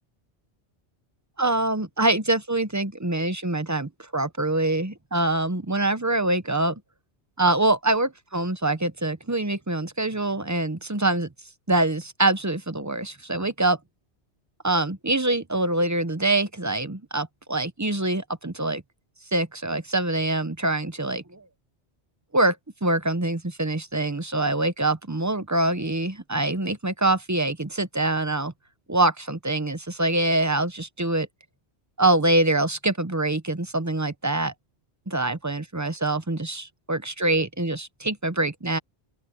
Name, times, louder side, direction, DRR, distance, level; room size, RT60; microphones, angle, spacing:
voice 1, 1.4-6.8 7.4-11.3 11.7-13.8 14.6-18.8 19.3-21.4 22.3-22.6 22.8-28.5 28.9-31.3 32.0-34.5 35.1-38.8, right 2 dB, 20° right, 0.7 m, -24 dB
open air
omnidirectional pair, 1.1 m